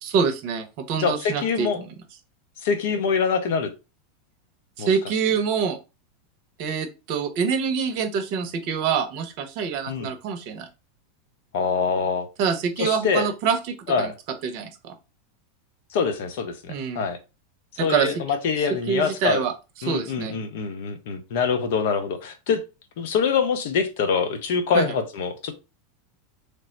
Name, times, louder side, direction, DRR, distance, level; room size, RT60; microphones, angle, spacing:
voice 1, 0.0-1.9 4.8-5.8 6.6-10.7 12.4-14.1 14.4-14.9 16.7-17.0 17.8-18.1 18.9-19.5 19.8-20.4 24.7-24.8, right 6 dB, 55° right, 0.7 m, -25 dB
voice 2, 1.0-1.8 2.6-3.7 4.8-4.9 9.9-10.1 11.5-12.3 12.8-13.3 13.9-14.1 15.9-17.2 17.8-19.5 19.8-22.6 23.0-25.5, left 6 dB, 60° left, 0.6 m, -24 dB
3.3 x 2.0 x 3.9 m
figure-of-eight pair, 85°, 0 cm